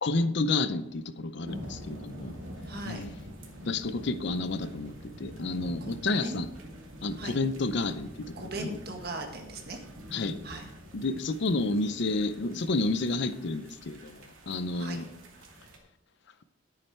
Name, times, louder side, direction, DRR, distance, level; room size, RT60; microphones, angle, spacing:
voice 1, 0.0-2.3 2.9-3.1 3.7-6.5 7.0-8.8 10.1-10.4 10.9-15.0, left 3 dB, 55° left, 12 dB, 0.6 m, -30 dB
sound 1, 1.4-15.8, equal, 80° right, 2.3 m, -46 dB
voice 2, 2.7-3.1 5.8-6.4 7.2-7.4 8.4-9.8 10.4-10.6 14.7-15.0, right 2 dB, 50° right, 3 dB, 1.7 m, -39 dB
11.0 x 8.7 x 4.5 m, 0.86 s
head